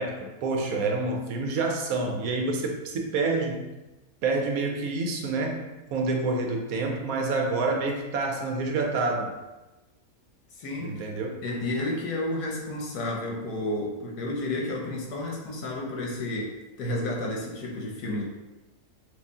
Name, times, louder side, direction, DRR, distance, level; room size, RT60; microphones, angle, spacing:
voice 1, 0.0-3.6 4.2-5.6 5.9-9.3 10.8-11.4, right 3 dB, 70° right, 2 dB, 1.0 m, -28 dB
voice 2, 10.5-11.0 11.4-18.2, left 1 dB, 80° left, -1 dB, 1.4 m, -31 dB
4.9 x 2.5 x 3.5 m, 1.1 s
omnidirectional pair, 1.6 m